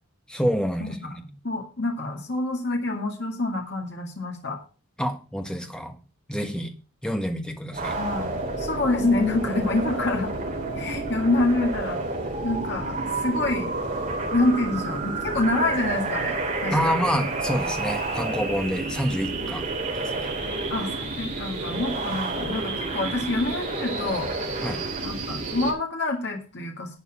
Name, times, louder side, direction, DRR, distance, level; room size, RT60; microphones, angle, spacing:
voice 1, 0.3-1.3 5.0-5.9 6.3-6.7 7.0-8.0 16.7-19.6 19.9-20.3 24.6-24.8, equal, 5° left, 5 dB, 1.4 m, -28 dB
voice 2, 1.4-4.6 6.4-6.5 8.0-10.3 10.7-12.0 12.4-13.7 14.3-17.0 20.7-24.3 25.0-27.0, left 2 dB, 55° left, 1 dB, 2.0 m, -27 dB
sound 1, 7.7-25.7, right 2 dB, 40° right, 3.3 m, -30 dB
11.5 x 8.3 x 4.9 m, 0.34 s
head